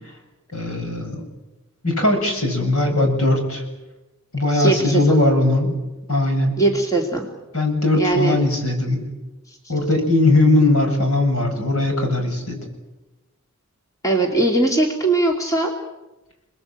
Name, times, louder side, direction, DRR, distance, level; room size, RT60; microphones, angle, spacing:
voice 1, 0.5-1.2 1.8-3.6 4.3-5.8 6.1-6.6 7.5-9.1 9.7-12.6, left 2 dB, 75° left, 4 dB, 7.6 m, -19 dB
voice 2, 4.5-5.2 6.6-7.3 7.9-8.4 9.5-9.6 14.0-15.7, right 2 dB, 15° left, 1 dB, 2.8 m, -20 dB
30.0 x 20.5 x 8.9 m, 1.1 s
head